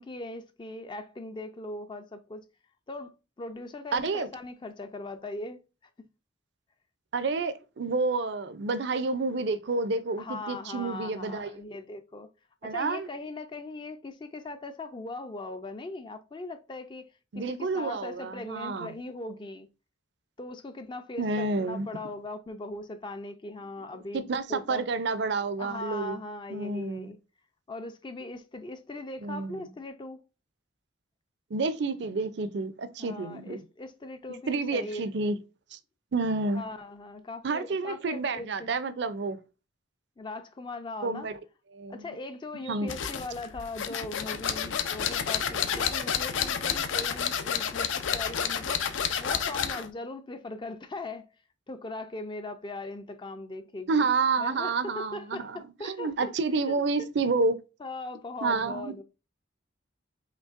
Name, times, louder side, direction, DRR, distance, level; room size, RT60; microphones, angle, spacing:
voice 1, 0.0-2.4 2.9-5.6 10.2-12.3 12.6-19.7 20.4-24.9 25.6-27.2 27.7-30.2 33.0-35.0 36.5-38.7 40.2-41.3 41.9-48.8 49.2-51.3 51.7-54.1 54.4-56.3 56.7-56.8 57.8-59.0, left 2 dB, 25° left, 0.4 m, -40 dB
voice 2, 3.9-4.3 7.1-11.5 12.6-13.1 17.3-18.9 21.2-21.9 24.1-26.2 26.5-27.1 29.2-29.7 31.5-33.6 34.5-35.4 35.7-35.8 36.1-36.6 37.4-39.4 41.0-41.4 41.7-42.0 42.7-42.9 53.9-57.6 58.4-58.9, right 3 dB, 60° right, 0.5 m, -29 dB
sound 1, 42.9-49.9, left 7 dB, 80° left, 0.6 m, -30 dB
5.2 x 3.2 x 2.4 m
head